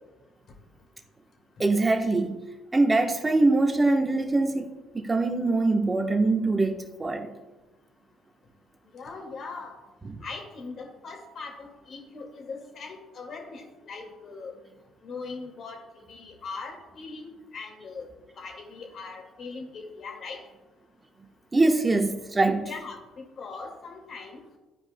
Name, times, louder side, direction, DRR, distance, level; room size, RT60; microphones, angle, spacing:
voice 1, 1.6-2.4 2.7-7.3 10.0-10.2 21.5-22.7, right 2 dB, 25° right, 1.1 m, -23 dB
voice 2, 8.9-9.7 10.2-14.5 15.0-15.8 16.1-18.1 18.4-20.4 22.6-23.0 23.4-24.4, left 4 dB, 55° left, 2.0 m, -40 dB
14.0 x 4.9 x 2.2 m
supercardioid pair, 75°, 0 cm